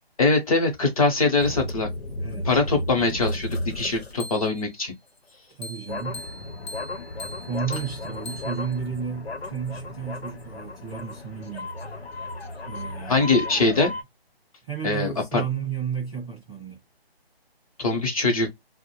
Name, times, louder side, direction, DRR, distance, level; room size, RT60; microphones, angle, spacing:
voice 1, 0.2-1.9 2.4-4.9 13.1-13.9 14.8-15.4 17.8-18.5, left 3 dB, 35° left, 0.8 m, -22 dB
sound 1, 1.4-4.7 5.6-14.0, left 2 dB, 85° left, 0.8 m, -34 dB
voice 2, 2.2-2.5 5.5-6.2 7.5-11.7 12.6-13.7 14.6-16.8, right 7 dB, ahead, 0.7 m, -33 dB
2.5 x 2.1 x 3.0 m
hypercardioid pair, 165°, 31 cm